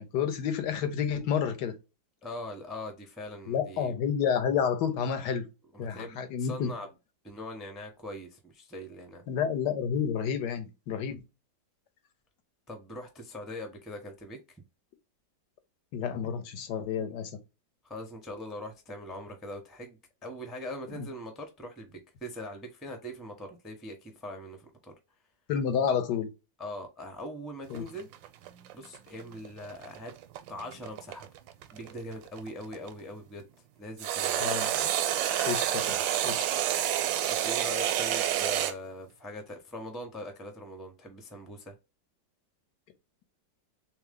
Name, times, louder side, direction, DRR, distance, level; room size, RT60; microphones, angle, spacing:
voice 1, 0.0-1.8 3.5-5.5 5.8-6.7 9.3-11.2 15.9-17.3 21.0-21.1 25.5-26.3 27.7-27.9 34.4-34.9 35.5-36.5, left 7 dB, 70° left, 1.3 m, -30 dB
voice 2, 2.2-4.0 5.7-6.9 7.2-9.2 12.7-14.6 17.8-24.9 26.6-28.1 28.7-30.1 30.5-31.3 31.7-33.5 33.8-34.4 37.3-41.8, left 1 dB, ahead, 0.6 m, -41 dB
sound 1, 27.7-32.9 34.0-38.7, right 11 dB, 85° right, 1.3 m, -29 dB
3.5 x 3.1 x 3.7 m
omnidirectional pair, 2.0 m